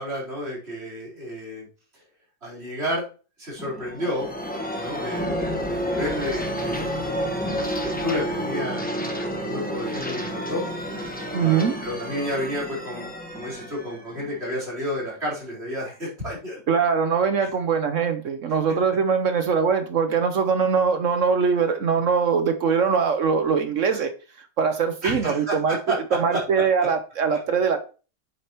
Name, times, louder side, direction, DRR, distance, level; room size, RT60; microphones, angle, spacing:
voice 1, 0.0-1.7 2.4-3.1 3.4-4.3 4.7-10.6 11.4-13.1 13.3-16.6 25.0-26.4, equal, 35° right, -5 dB, 4.1 m, -31 dB
sound 1, 3.6-15.1, equal, 5° left, 0.9 m, -30 dB
voice 2, 11.3-11.7 16.7-24.1 24.4-25.8 26.1-27.8, right 6 dB, 60° right, 8 dB, 0.9 m, -22 dB
8.0 x 7.8 x 3.0 m, 0.35 s
omnidirectional pair, 2.0 m